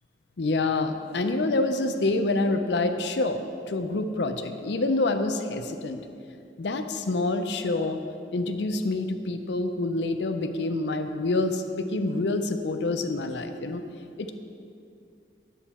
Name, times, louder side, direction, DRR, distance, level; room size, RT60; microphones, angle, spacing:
voice 1, 0.4-6.0 6.6-8.0 8.3-13.8 14.2-14.3, left 2 dB, 85° left, 7 dB, 0.5 m, -27 dB
9.0 x 7.2 x 4.2 m, 2.5 s
head